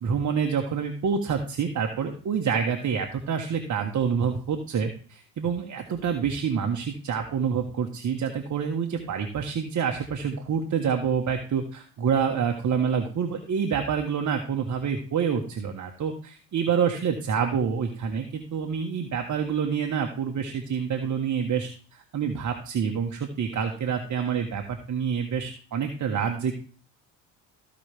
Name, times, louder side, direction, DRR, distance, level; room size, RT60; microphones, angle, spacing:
voice 1, 0.0-26.5, right 7 dB, 40° right, 3 dB, 1.3 m, -27 dB
15.0 x 5.3 x 3.4 m, 0.41 s
hypercardioid pair, 60°, 48 cm